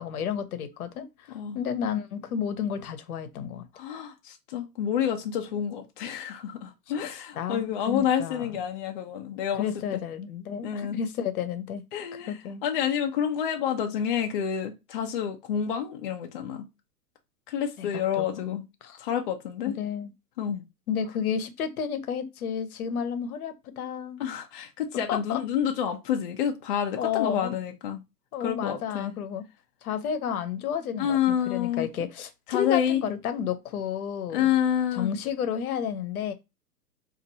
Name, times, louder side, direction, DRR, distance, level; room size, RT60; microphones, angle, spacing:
voice 1, 0.0-3.6 7.4-8.6 9.6-11.8 12.1-12.6 17.8-19.0 19.7-20.1 20.9-24.2 25.1-25.4 27.0-27.6 28.3-29.4 29.8-31.2 31.5-34.5 34.9-36.3, left 8 dB, 60° left, 0.8 m, -31 dB
voice 2, 3.7-9.7 9.9-10.0 10.6-11.0 11.9-12.3 12.6-16.6 17.5-18.7 19.0-19.7 20.4-20.6 24.2-28.0 28.4-29.1 31.0-31.9 32.5-33.0 34.3-35.1, left 9 dB, 35° left, 0.4 m, -28 dB
4.3 x 2.6 x 2.7 m
hypercardioid pair, 120°, 49 cm